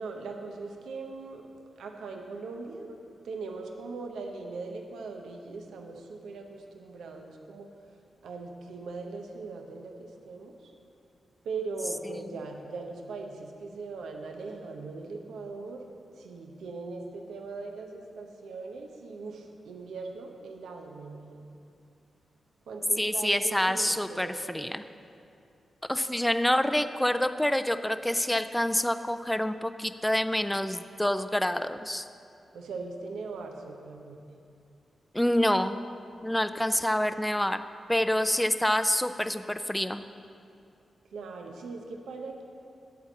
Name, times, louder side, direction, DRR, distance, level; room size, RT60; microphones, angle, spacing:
voice 1, 0.0-1.5 1.8-3.0 3.2-7.7 8.2-10.7 11.4-15.8 16.2-21.5 22.7-24.7 32.5-34.2 41.1-42.4, right 3 dB, 85° right, 3 dB, 0.8 m, -40 dB
voice 2, 23.0-24.8 25.9-32.1 35.1-35.8 36.2-37.6 37.9-40.0, left 1 dB, 10° left, 10 dB, 0.5 m, -27 dB
10.5 x 4.5 x 7.1 m, 2.5 s
supercardioid pair, 40°, 0 cm